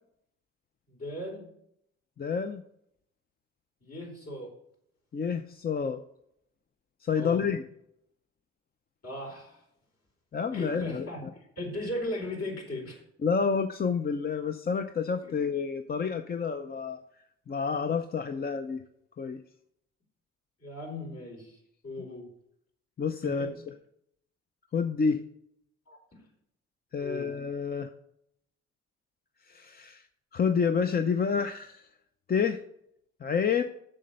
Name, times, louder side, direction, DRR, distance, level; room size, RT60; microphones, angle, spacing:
voice 1, 0.9-1.5 3.8-4.5 7.1-7.4 9.0-9.6 10.5-13.0 15.2-15.4 20.6-21.6 21.8-22.3 23.4-23.5 25.9-26.2 27.0-27.3, left 1 dB, 50° left, 0 dB, 4.2 m, -37 dB
voice 2, 2.2-2.6 5.1-6.0 7.0-7.6 10.3-11.1 13.2-17.0 17.5-18.8 19.2-19.4 23.0-23.5 24.7-25.2 26.9-27.9 29.5-30.0 30.3-31.9 32.3-32.6 33.2-33.6, left 6 dB, 30° left, 8 dB, 0.5 m, -29 dB
7.2 x 6.7 x 5.3 m, 0.74 s
cardioid pair, 90°, 30 cm